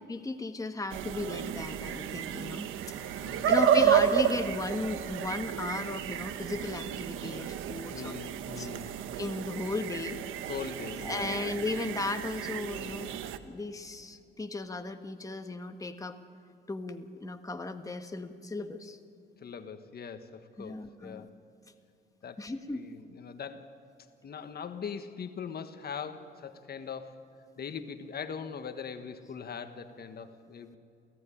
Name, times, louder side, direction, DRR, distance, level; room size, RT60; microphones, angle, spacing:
voice 1, 0.0-8.1 8.6-8.7 9.2-10.2 11.0-16.2 16.7-19.0 20.6-21.3 22.4-22.8, left 3 dB, 15° left, 6 dB, 1.5 m, -36 dB
sound 1, 0.9-13.4, right 9 dB, 85° right, 1.2 m, -31 dB
voice 2, 3.2-3.7 7.9-9.0 10.5-11.4 19.4-21.3 22.2-23.7 24.2-27.2 27.6-30.8, left 6 dB, 50° left, 8 dB, 1.5 m, -41 dB
28.5 x 16.0 x 10.0 m, 2.5 s
cardioid pair, 90°, 20 cm